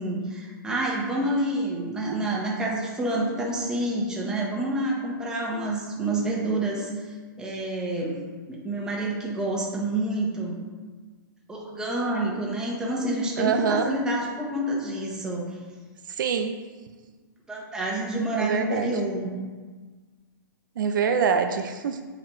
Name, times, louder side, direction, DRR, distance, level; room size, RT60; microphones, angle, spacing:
voice 1, 0.0-8.2 8.5-10.6 11.5-15.4 17.5-19.3, right 1 dB, 5° right, -3 dB, 0.9 m, -28 dB
voice 2, 13.4-13.9 16.1-16.6 18.4-18.9 20.8-22.0, right 6 dB, 65° right, 6 dB, 0.5 m, -25 dB
8.8 x 4.1 x 3.0 m, 1.4 s
hypercardioid pair, 155°, 11 cm